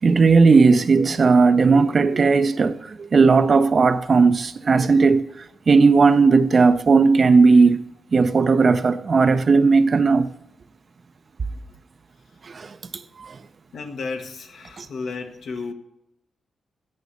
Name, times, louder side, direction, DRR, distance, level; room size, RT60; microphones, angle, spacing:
voice 1, 0.0-5.3 5.7-7.8 8.1-10.3 12.5-12.7 13.2-13.4 14.8-14.9, right 4 dB, 45° right, 0.5 m, -16 dB
voice 2, 13.7-15.7, left 4 dB, 70° left, 1.3 m, -33 dB
8.5 x 6.9 x 6.6 m
cardioid pair, 90°, 0 cm